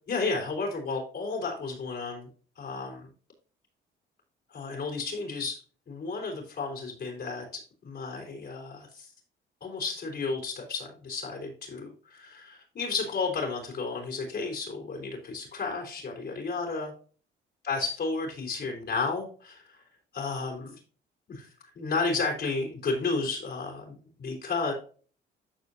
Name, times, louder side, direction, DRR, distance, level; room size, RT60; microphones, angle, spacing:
voice 1, 0.1-2.3 2.6-3.1 4.5-5.6 5.9-9.1 9.6-16.9 17.6-19.8 20.1-20.8 21.3-21.5 21.7-24.7, left 4 dB, 55° left, 1 dB, 3.9 m, -32 dB
14.0 x 4.7 x 2.8 m, 0.40 s
cardioid pair, 90°, 20 cm